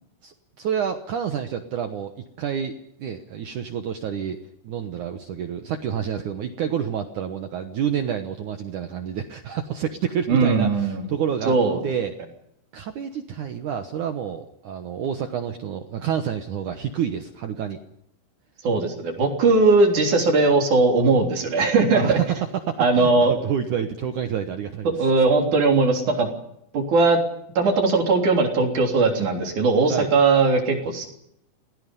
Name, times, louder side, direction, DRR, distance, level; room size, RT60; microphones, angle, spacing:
voice 1, 0.2-2.7 3.0-11.6 11.8-12.2 12.7-17.8 21.9-25.1 29.9-30.1, right 8 dB, 80° right, 7 dB, 1.7 m, -28 dB
voice 2, 10.3-11.0 11.5-11.8 18.6-22.2 22.8-23.3 25.0-26.3 26.7-27.2 27.6-31.1, right 3 dB, 45° right, 2 dB, 4.5 m, -19 dB
28.0 x 19.5 x 5.4 m, 0.77 s
omnidirectional pair, 5.4 m